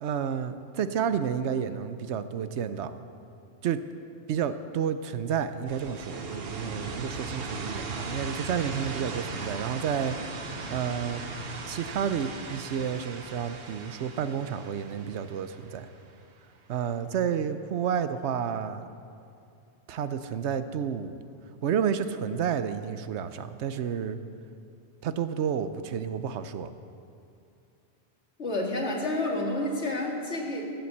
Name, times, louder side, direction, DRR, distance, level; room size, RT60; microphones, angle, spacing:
voice 1, 0.0-3.0 3.6-3.8 4.3-10.2 10.7-11.2 11.7-15.9 16.7-18.9 19.9-21.2 21.6-24.2 25.0-26.7, right 8 dB, 80° right, 11 dB, 1.0 m, -30 dB
sound 1, 5.7-16.4, right 3 dB, 60° right, 1.2 m, -38 dB
voice 2, 28.4-30.6, left 1 dB, 80° left, -1 dB, 2.3 m, -29 dB
15.5 x 7.8 x 7.2 m, 2.5 s
omnidirectional pair, 1.1 m